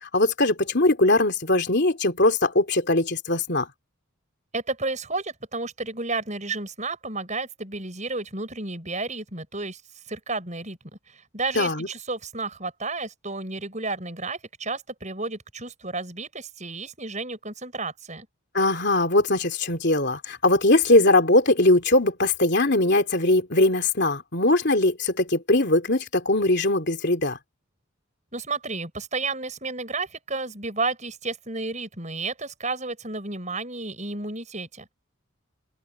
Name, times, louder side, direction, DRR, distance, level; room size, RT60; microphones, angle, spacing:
voice 1, 0.0-3.7 11.5-11.9 18.5-27.4, left 2 dB, 50° left, 3.2 m, -21 dB
voice 2, 4.5-9.8 10.1-10.8 11.1-18.3 28.3-34.9, right 3 dB, 35° right, 7.0 m, -32 dB
open air
head